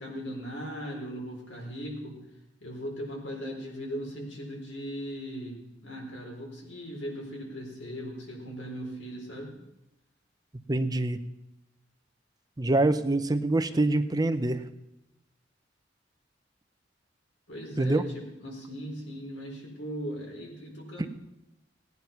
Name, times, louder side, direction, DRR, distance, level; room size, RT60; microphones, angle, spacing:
voice 1, 0.0-2.2 2.6-9.5 17.5-21.1, equal, 85° left, -1 dB, 4.1 m, -38 dB
voice 2, 10.7-11.2 12.6-14.6 17.8-18.0 21.0-21.1, right 2 dB, 20° right, 10 dB, 0.7 m, -25 dB
18.0 x 9.5 x 5.8 m, 0.88 s
head